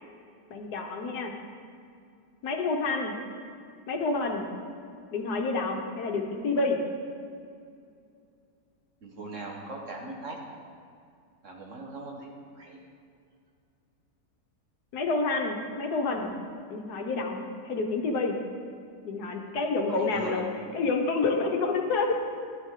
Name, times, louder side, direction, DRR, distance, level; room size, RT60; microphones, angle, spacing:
voice 1, 0.5-1.3 2.4-3.1 3.9-4.5 5.1-6.8 14.9-16.4 16.7-18.4 19.0-20.5 20.7-22.1, left 3 dB, 70° left, 2 dB, 1.5 m, -28 dB
voice 2, 9.0-10.4 11.4-12.8 19.9-20.4, right 2 dB, 50° right, 0 dB, 1.5 m, -40 dB
12.5 x 9.9 x 3.7 m, 2.4 s
omnidirectional pair, 1.8 m